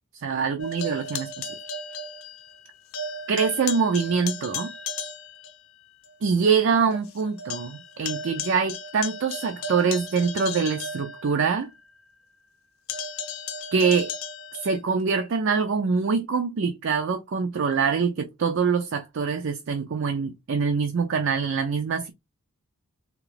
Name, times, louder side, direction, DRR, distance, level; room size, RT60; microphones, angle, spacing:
voice 1, 0.1-1.5 3.3-4.7 6.2-11.7 13.7-14.1 14.6-22.1, right 5 dB, 55° right, 0.4 m, -24 dB
sound 1, 0.6-2.7 2.9-5.6 6.0-6.1 6.6-6.7 6.9-11.7 12.9-14.8, left 3 dB, 65° left, 0.6 m, -35 dB
3.6 x 2.9 x 3.2 m
head